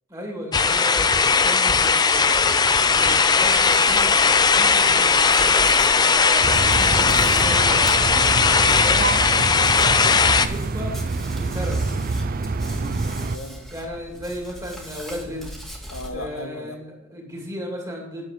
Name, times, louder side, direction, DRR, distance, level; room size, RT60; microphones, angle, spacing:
voice 1, 0.1-11.8 13.7-15.5 16.1-18.2, equal, 15° right, -1 dB, 2.3 m, -35 dB
sound 1, 0.5-10.5, left 5 dB, 20° left, 0.4 m, -18 dB
Hands, 3.2-16.1, equal, ahead, 1.9 m, -39 dB
sound 2, 6.4-13.4, right 3 dB, 40° right, 0.4 m, -26 dB
voice 2, 12.6-13.7 15.9-16.8, left 2 dB, 70° left, 7 dB, 1.3 m, -38 dB
10.0 x 7.3 x 5.1 m, 0.84 s
head